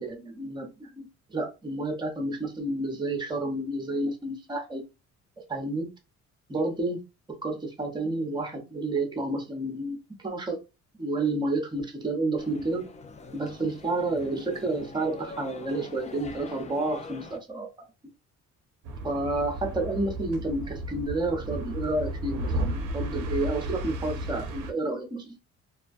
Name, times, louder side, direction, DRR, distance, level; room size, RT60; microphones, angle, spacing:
voice 1, 0.0-4.8 5.5-5.9 6.5-7.0 7.4-10.6 11.0-12.8 13.3-17.7 19.0-25.2, right 2 dB, 15° right, 3 dB, 0.7 m, -30 dB
sound 1, 12.4-17.4, left 3 dB, 25° left, 0.4 m, -44 dB
sound 2, 18.8-24.7, right 1 dB, 85° right, 0.5 m, -33 dB
2.3 x 2.1 x 2.5 m, 0.28 s
cardioid pair, 90°, 30 cm